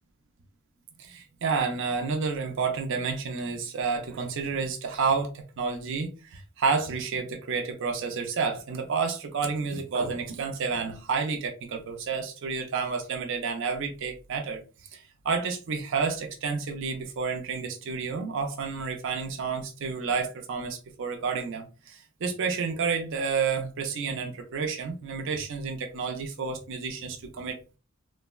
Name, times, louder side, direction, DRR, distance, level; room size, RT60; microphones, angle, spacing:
voice 1, 1.0-14.6 14.9-27.8, right 5 dB, 60° right, 0.5 m, -30 dB
3.3 x 2.0 x 2.2 m
head